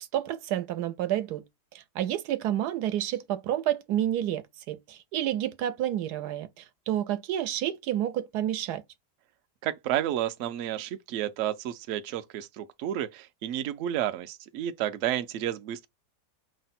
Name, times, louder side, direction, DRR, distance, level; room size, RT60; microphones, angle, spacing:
voice 1, 0.1-1.4 1.7-4.4 4.7-8.8, right 12 dB, 85° right, 1.2 m, -29 dB
voice 2, 9.6-15.9, right 11 dB, 70° right, 0.7 m, -31 dB
4.8 x 2.2 x 4.1 m
omnidirectional pair, 1.7 m